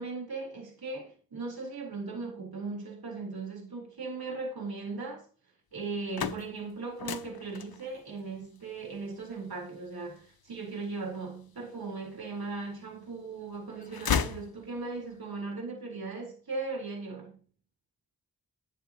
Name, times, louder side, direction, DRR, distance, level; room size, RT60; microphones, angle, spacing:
voice 1, 0.0-5.3 5.7-17.4, right 3 dB, 85° right, 4.1 m, -38 dB
sound 1, 5.8-11.8 12.4-13.2 13.5-15.1, left 7 dB, 80° left, 0.8 m, -36 dB
12.5 x 8.3 x 2.9 m
cardioid pair, 45°, 36 cm